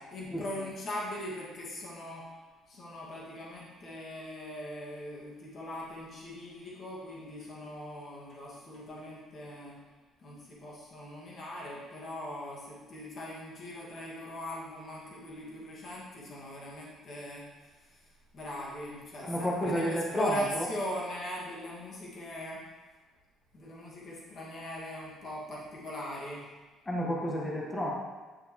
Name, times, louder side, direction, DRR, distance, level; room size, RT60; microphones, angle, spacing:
voice 1, 0.1-2.4 2.7-9.8 10.2-22.7 23.5-26.5, equal, 40° left, -5 dB, 2.2 m, -40 dB
voice 2, 19.2-20.7 26.8-27.9, equal, 15° left, -3 dB, 1.6 m, -31 dB
10.0 x 6.6 x 3.2 m, 1.3 s
cardioid pair, 135°, 0 cm